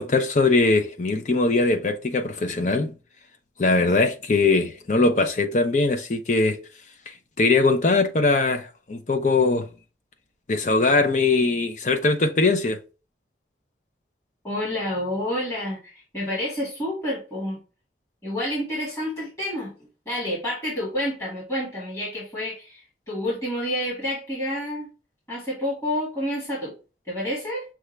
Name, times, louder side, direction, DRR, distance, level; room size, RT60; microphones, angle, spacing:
voice 1, 0.0-2.9 3.6-6.6 7.1-9.7 10.5-12.8, left 3 dB, 40° left, 0.6 m, -21 dB
voice 2, 14.4-17.6 18.2-19.7 20.1-24.9 25.3-26.7 27.1-27.6, left 1 dB, 15° left, 1.8 m, -29 dB
6.2 x 2.3 x 3.2 m
head